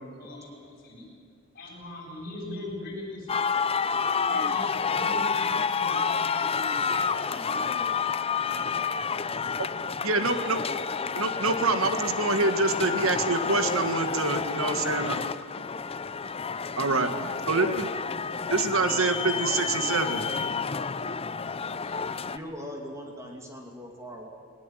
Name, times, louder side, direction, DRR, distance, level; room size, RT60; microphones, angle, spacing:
voice 1, 0.2-1.1 1.5-3.5 4.2-7.8 8.4-8.7 9.2-9.4 21.8-22.0, left 2 dB, 45° left, -2 dB, 7.9 m, -40 dB
sound 1, 3.3-22.4, left 5 dB, 25° left, 0.6 m, -29 dB
voice 2, 10.0-10.6 11.2-15.2 16.8-17.1 17.5-17.9 18.5-20.2, right 3 dB, 70° right, 8 dB, 1.8 m, -26 dB
voice 3, 22.3-24.3, equal, 15° right, 1 dB, 2.4 m, -40 dB
20.0 x 20.0 x 9.1 m, 2.3 s
head